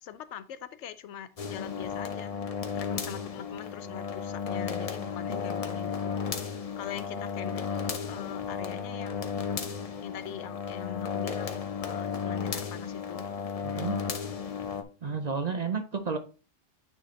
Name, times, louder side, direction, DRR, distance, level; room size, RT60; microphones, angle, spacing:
voice 1, 0.0-2.4 2.7-6.2 6.8-9.5 10.0-13.2, left 9 dB, 75° left, 0.9 m, -42 dB
sound 1, 1.4-14.8, left 6 dB, 40° left, 0.6 m, -34 dB
voice 2, 13.6-14.0 15.0-16.2, right 5 dB, 45° right, 0.6 m, -31 dB
9.1 x 4.2 x 3.1 m
omnidirectional pair, 1.2 m